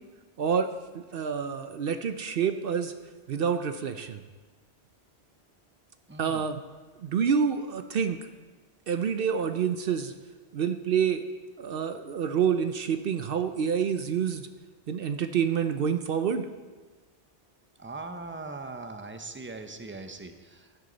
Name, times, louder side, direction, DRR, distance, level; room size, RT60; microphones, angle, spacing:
voice 1, 0.4-0.7 0.9-2.9 3.3-4.2 6.2-6.6 7.0-8.2 8.9-10.1 10.5-11.2 11.6-14.5 14.9-16.5, right 7 dB, 60° right, 8 dB, 0.8 m, -27 dB
voice 2, 6.1-6.5 17.8-20.8, right 3 dB, 15° right, 7 dB, 0.7 m, -40 dB
15.0 x 11.0 x 4.0 m, 1.4 s
omnidirectional pair, 1.1 m